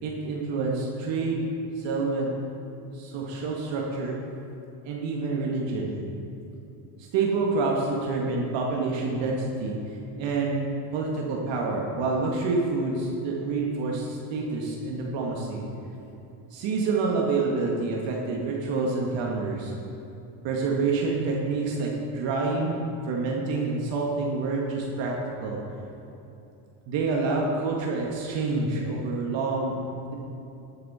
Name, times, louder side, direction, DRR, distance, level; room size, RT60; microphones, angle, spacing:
voice 1, 0.0-1.4 1.8-2.3 2.9-4.2 4.9-5.9 7.1-9.7 10.2-10.6 10.9-15.6 16.5-19.7 20.4-22.7 23.1-25.1 25.4-25.6 26.9-29.8 30.1-30.2, right 3 dB, 60° right, -2 dB, 2.0 m, -27 dB
12.5 x 9.2 x 4.4 m, 2.8 s
supercardioid pair, 95°, 50 cm